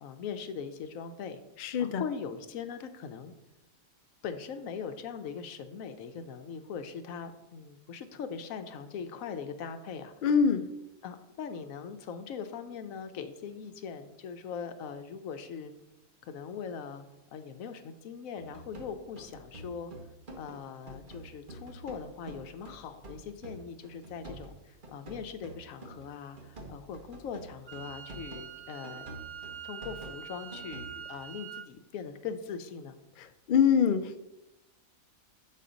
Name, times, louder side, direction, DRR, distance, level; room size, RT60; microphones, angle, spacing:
voice 1, 0.0-1.4 1.8-3.3 4.2-10.1 11.0-15.7 16.2-17.0 17.3-19.9 20.4-29.1 29.6-32.9, left 6 dB, 80° left, 9 dB, 1.1 m, -41 dB
voice 2, 1.6-2.0 10.2-10.7 33.5-34.2, left 7 dB, 65° left, 9 dB, 0.5 m, -24 dB
sound 1, 18.4-20.6 20.9-28.5 28.8-31.0, right 2 dB, 40° right, 1.2 m, -47 dB
Wind instrument woodwind instrument, 27.7-31.7, right 9 dB, 90° right, 1.1 m, -44 dB
7.4 x 4.2 x 5.0 m, 0.94 s
omnidirectional pair, 1.4 m